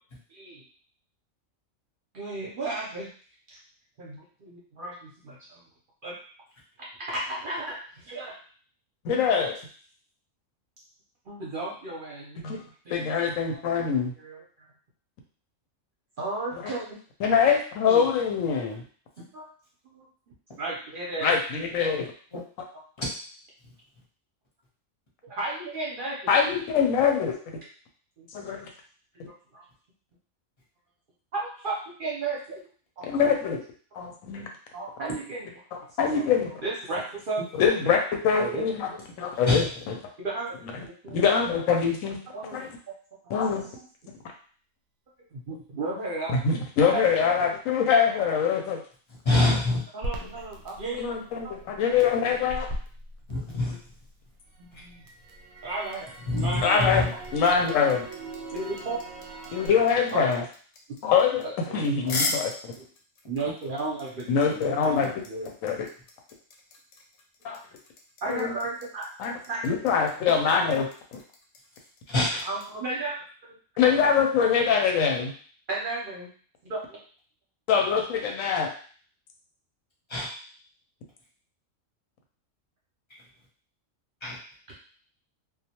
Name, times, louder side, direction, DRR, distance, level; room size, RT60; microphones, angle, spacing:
voice 1, 0.3-0.6 2.1-3.1 3.5-3.6 4.0-5.6 6.0-6.1 7.0-8.3 9.1-9.3 11.3-13.8 14.2-14.7 16.2-17.0 17.8-18.1 19.2-19.5 19.8-20.1 20.6-21.4 21.8-21.9 25.2-26.4 28.2-28.3 29.5-29.6 31.3-32.7 33.0-33.1 34.7-35.5 36.2-36.3 36.6-37.8 38.4-38.7 40.2-40.6 40.9-41.2 42.3-42.6 43.6-44.1 45.3-46.4 46.9-47.0 49.4-49.5 49.9-51.5 53.7-53.8 54.6-55.0 55.6-57.2 58.5-59.0 60.1-60.3 61.4-62.1 62.8-62.9 63.3-65.5 68.2-69.1 69.5-69.8 72.4-73.2 73.5-73.6 75.7-76.3 76.6-77.0, right 3 dB, 55° right, -4 dB, 0.7 m, -34 dB
voice 2, 9.0-9.6 12.4-12.6 12.9-14.1 16.5-16.7 17.2-18.8 21.2-22.1 26.3-27.6 28.3-28.7 33.1-33.6 33.9-34.5 35.7-36.5 37.6-38.9 39.2-40.0 40.6-42.2 42.5-42.7 43.3-43.7 46.3-48.8 51.0-52.7 56.6-57.1 57.3-58.1 59.5-60.5 61.0-62.7 64.3-65.9 67.4-67.6 68.3-68.6 69.2-71.2 73.8-75.3 77.7-78.7, left 6 dB, 90° left, 2 dB, 1.0 m, -24 dB
voice 3, 49.2-49.8 53.3-53.8 56.3-57.1 72.1-72.4 80.1-80.3 84.2-84.4, left 2 dB, 30° left, -5 dB, 0.6 m, -25 dB
Crackle, 50.0-54.1 54.5-59.7, right 1 dB, 90° right, 1.0 m, -40 dB
sound 1, 55.8-72.7, left 3 dB, 65° left, 0.8 m, -37 dB
2.3 x 2.1 x 2.8 m, 0.43 s
omnidirectional pair, 1.3 m